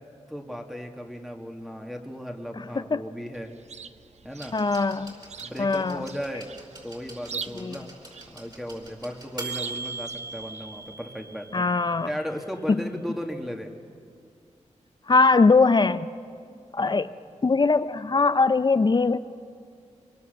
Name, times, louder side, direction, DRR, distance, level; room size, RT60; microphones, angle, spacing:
voice 1, 0.3-3.5 4.2-4.6 5.4-6.5 6.8-7.9 8.3-11.6 12.0-13.7 16.8-17.0, equal, ahead, 3 dB, 1.9 m, -36 dB
Chirp tweet, 3.3-10.9, right 6 dB, 65° right, 0.6 m, -44 dB
sound 1, 4.4-12.2 13.3-13.4, right 3 dB, 35° right, 5.0 m, -41 dB
voice 2, 4.5-5.1 5.6-6.0 7.5-7.8 11.5-12.1 12.7-12.8 15.1-16.1 16.7-17.1 17.4-19.2, left 4 dB, 35° left, 13 dB, 0.5 m, -21 dB
24.0 x 22.5 x 6.7 m, 2.3 s
wide cardioid pair, 90°, 12 cm